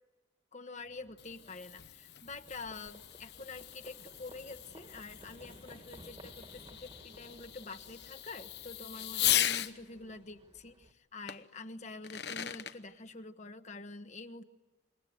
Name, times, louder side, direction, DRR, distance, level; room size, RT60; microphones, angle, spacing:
voice 1, 0.5-14.4, left 3 dB, 40° left, 8 dB, 1.1 m, -47 dB
Fireworks, 0.9-9.7 11.3-11.4 11.9-12.8, left 12 dB, 60° left, 1.0 m, -38 dB
Livestock farm animals working animals, 2.2-10.9, right 1 dB, 30° right, 1.8 m, -57 dB
27.0 x 22.5 x 9.5 m, 1.1 s
head